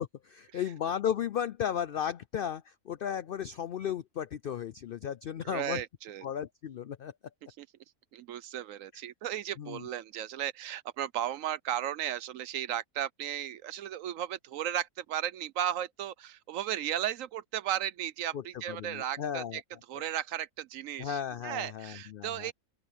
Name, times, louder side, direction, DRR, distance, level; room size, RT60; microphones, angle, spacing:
voice 1, 0.0-5.8 6.2-7.1 9.6-9.8 18.3-18.4 18.7-19.6 21.0-22.5, left 9 dB, 85° left, 0.4 m, -35 dB
voice 2, 5.4-6.2 7.6-7.7 8.1-19.6 19.9-22.5, right 11 dB, 70° right, 1.0 m, -35 dB
open air
omnidirectional pair, 1.5 m